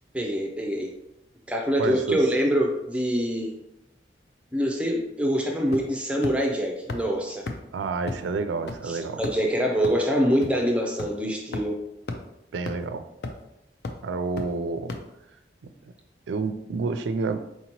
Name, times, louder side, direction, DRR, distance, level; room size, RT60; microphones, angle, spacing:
voice 1, 0.1-0.9 1.5-3.5 4.5-7.4 8.9-11.8, equal, 5° right, 1 dB, 0.4 m, -25 dB
voice 2, 1.8-2.2 7.7-9.2 12.5-13.1 14.0-14.9 16.3-17.4, right 4 dB, 90° right, 9 dB, 0.4 m, -29 dB
sound 1, 5.7-6.0 6.2-6.3 6.9-7.0 7.5-7.6 8.1-8.2 8.7-8.8 9.2-9.5 9.8-9.9 10.4-10.5 11.0-11.1 11.5-11.6 12.1-12.2 12.7-12.8 13.2-13.5 13.8-13.9 14.4-14.5 14.9-15.0, left 3 dB, 60° left, 0.4 m, -32 dB
4.4 x 2.8 x 2.9 m, 0.86 s
head